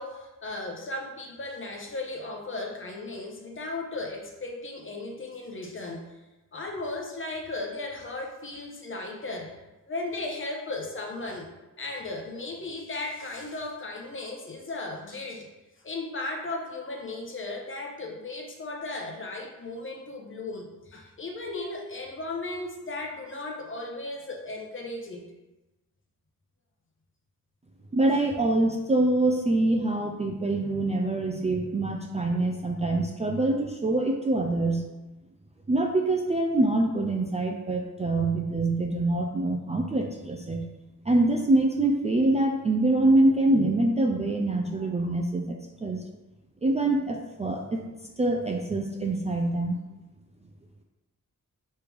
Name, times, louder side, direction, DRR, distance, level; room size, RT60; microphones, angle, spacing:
voice 1, 0.0-6.0 6.5-9.6 9.9-11.5 11.8-15.5 15.8-25.2, left 2 dB, 35° left, 1 dB, 0.9 m, -36 dB
voice 2, 27.9-34.9 35.7-40.7 41.1-46.0 46.6-47.8 48.2-49.8, right 2 dB, 20° right, 1 dB, 0.4 m, -25 dB
4.7 x 3.2 x 3.4 m, 1.1 s
cardioid pair, 80°, 33 cm